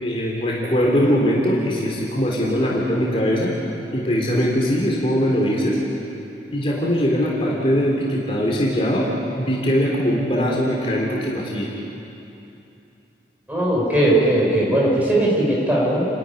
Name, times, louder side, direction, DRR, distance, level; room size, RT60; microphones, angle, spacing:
voice 1, 0.0-3.5 3.9-5.8 6.5-9.1 9.4-11.7, equal, 30° left, -3 dB, 3.2 m, -21 dB
voice 2, 13.5-16.0, right 1 dB, 10° right, -4 dB, 5.4 m, -18 dB
30.0 x 12.5 x 9.7 m, 2.8 s
head